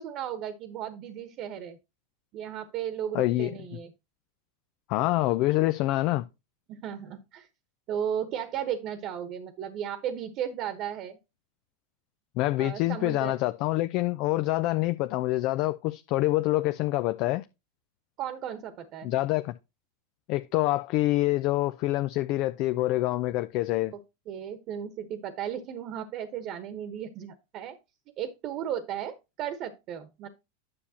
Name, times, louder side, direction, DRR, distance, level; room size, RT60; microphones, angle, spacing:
voice 1, 0.0-1.8 2.3-3.9 6.7-7.5 7.9-11.2 12.6-13.4 18.2-19.1 24.3-27.8 28.2-30.3, right 9 dB, 45° right, 1.1 m, -35 dB
voice 2, 3.1-3.5 4.9-6.2 12.4-17.4 19.0-19.5 20.3-23.9, left 17 dB, 55° left, 0.5 m, -26 dB
9.7 x 7.0 x 2.8 m
hypercardioid pair, 95°, 0 cm